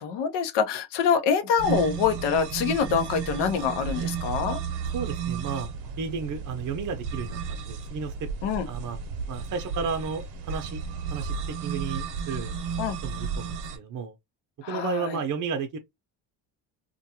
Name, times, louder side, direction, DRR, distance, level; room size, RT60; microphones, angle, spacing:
voice 1, 0.0-4.6 8.4-8.7 12.8-13.0 14.6-15.2, left 6 dB, 80° left, 0.7 m, -25 dB
sound 1, 1.6-13.8, right 6 dB, 80° right, 0.8 m, -33 dB
voice 2, 4.9-5.7 6.0-8.3 8.7-9.0 9.3-10.8 11.1-12.5 13.0-14.1 14.7-15.8, right 5 dB, 50° right, 0.6 m, -33 dB
2.5 x 2.2 x 2.8 m
supercardioid pair, 75°, 41 cm